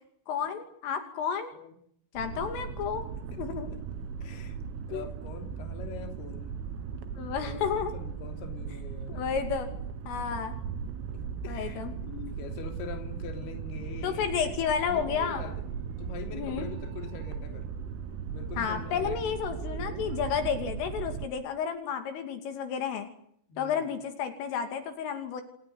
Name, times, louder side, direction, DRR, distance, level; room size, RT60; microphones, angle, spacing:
voice 1, 0.3-1.5 2.1-3.0 3.4-3.7 4.9-5.0 7.2-7.9 9.1-9.7 10.1-10.6 11.5-11.9 14.0-15.5 16.3-16.7 18.6-23.1 23.6-25.4, left 7 dB, 75° left, 7 dB, 5.1 m, -31 dB
sound 1, 2.2-21.3, right 7 dB, 80° right, 4.3 m, -37 dB
voice 2, 4.2-4.6 4.9-6.6 7.3-9.4 10.1-10.3 11.1-14.5 14.8-15.6 16.0-17.7 18.3-19.4 23.5-23.9, left 6 dB, 55° left, 5 dB, 4.9 m, -44 dB
29.0 x 20.0 x 9.6 m, 0.67 s
omnidirectional pair, 5.9 m